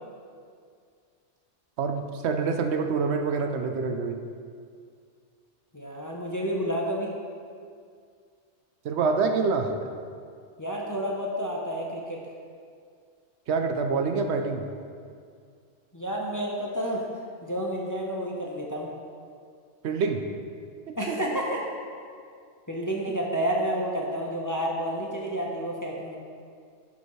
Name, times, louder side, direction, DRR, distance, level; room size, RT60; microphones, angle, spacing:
voice 1, 1.8-4.2 8.8-9.7 13.5-14.6 19.8-20.2 20.9-21.2, right 4 dB, 70° right, 5 dB, 0.9 m, -26 dB
voice 2, 5.7-7.1 10.6-12.2 15.9-17.0 17.4-18.9 21.0-21.6 22.7-26.2, equal, 20° left, -2 dB, 0.7 m, -30 dB
11.5 x 5.7 x 3.2 m, 2.2 s
omnidirectional pair, 1.2 m